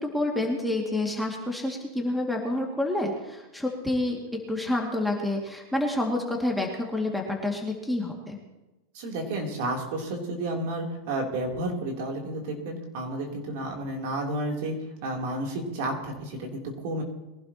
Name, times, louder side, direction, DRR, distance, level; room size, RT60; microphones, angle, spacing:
voice 1, 0.0-8.4, left 1 dB, ahead, -1 dB, 2.3 m, -28 dB
voice 2, 8.9-14.7 15.0-17.0, right 1 dB, 60° right, 0 dB, 3.4 m, -31 dB
22.5 x 11.5 x 3.0 m, 1.0 s
hypercardioid pair, 115°, 0 cm